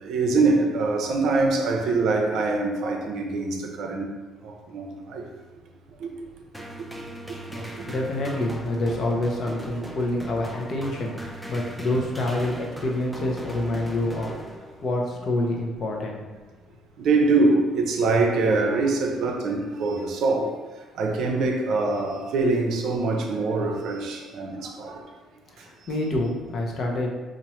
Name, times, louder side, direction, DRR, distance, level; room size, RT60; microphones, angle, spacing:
voice 1, 0.0-4.1 4.4-5.2 6.0-6.1 7.3-7.4 7.8-7.9 17.0-20.5 21.0-25.0, right 3 dB, 65° right, 2 dB, 0.5 m, -24 dB
sound 1, 6.5-15.0, equal, ahead, 0.4 m, -39 dB
voice 2, 7.5-14.3 14.8-16.2 25.6-27.1, left 1 dB, 45° left, 0 dB, 0.7 m, -27 dB
3.0 x 2.5 x 4.2 m, 1.2 s
cardioid pair, 130°, 0 cm